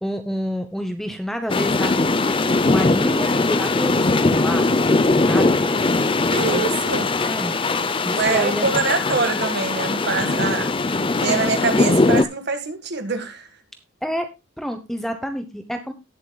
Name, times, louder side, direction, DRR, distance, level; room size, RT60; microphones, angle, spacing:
voice 1, 0.0-2.0 2.4-4.7 5.2-5.8 6.4-6.6 7.2-7.5 8.0-8.7 14.0-14.3 14.6-15.9, equal, ahead, 0.9 m, -28 dB
sound 1, 1.5-12.2, left 3 dB, 25° left, 0.6 m, -20 dB
voice 2, 6.3-7.1 8.1-10.7 11.2-13.5, right 4 dB, 50° right, 1.7 m, -24 dB
18.5 x 7.6 x 2.3 m
head